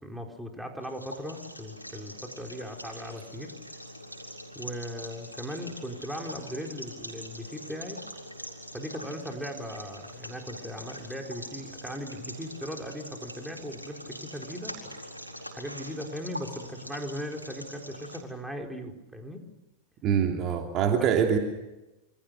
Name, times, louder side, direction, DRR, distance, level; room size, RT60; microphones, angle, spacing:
voice 1, 0.0-3.5 4.5-8.0 8.7-14.9 15.5-19.4 21.0-21.1, equal, 5° right, 2 dB, 4.5 m, -38 dB
sound 1, 0.8-18.2, equal, 90° right, 4.4 m, -43 dB
voice 2, 20.0-21.4, right 8 dB, 35° right, 3 dB, 2.8 m, -24 dB
28.0 x 26.0 x 6.7 m, 0.99 s
figure-of-eight pair, 90°, 0 cm